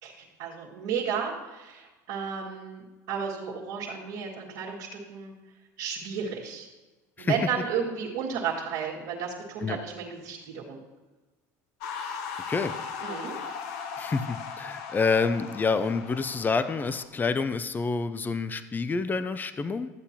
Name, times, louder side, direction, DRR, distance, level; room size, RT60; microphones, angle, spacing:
voice 1, 0.0-5.3 5.8-6.7 7.2-10.8 13.0-13.4, right 6 dB, 70° right, -8 dB, 1.9 m, -33 dB
sound 1, 11.8-17.0, left 6 dB, 75° left, 0.9 m, -38 dB
voice 2, 14.0-19.9, left 4 dB, 20° left, 12 dB, 0.6 m, -28 dB
13.5 x 8.1 x 2.9 m, 1.2 s
hypercardioid pair, 85°, 9 cm